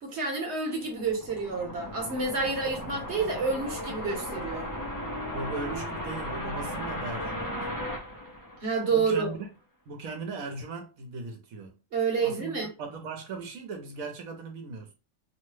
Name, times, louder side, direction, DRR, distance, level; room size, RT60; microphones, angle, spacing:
voice 1, 0.0-4.7 8.6-9.3 11.9-12.7, right 4 dB, 55° right, 1.2 m, -29 dB
sound 1, 0.8-9.1, equal, 25° left, 0.4 m, -36 dB
voice 2, 5.3-7.6 8.9-9.5 9.9-11.8 12.2-14.9, right 3 dB, 80° right, 1.2 m, -38 dB
3.0 x 2.1 x 3.1 m
omnidirectional pair, 1.4 m